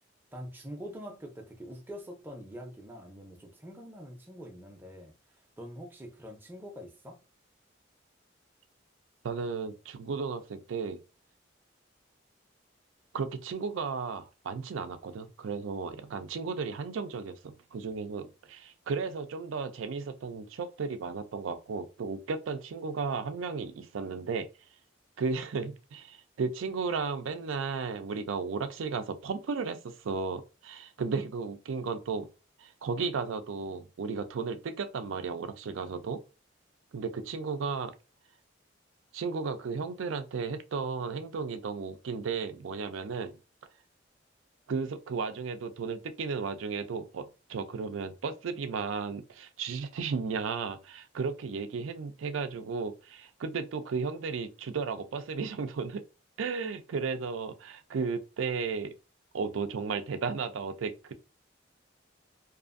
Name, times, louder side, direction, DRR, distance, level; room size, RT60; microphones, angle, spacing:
voice 1, 0.3-5.1 5.6-7.2, equal, 10° right, 0.5 m, -44 dB
voice 2, 9.2-11.0 13.1-24.5 25.2-32.3 32.6-36.2 36.9-37.9 39.1-43.3 44.7-56.0 56.4-58.9 59.3-61.1, right 5 dB, 85° right, 0.4 m, -34 dB
2.6 x 2.4 x 2.5 m
head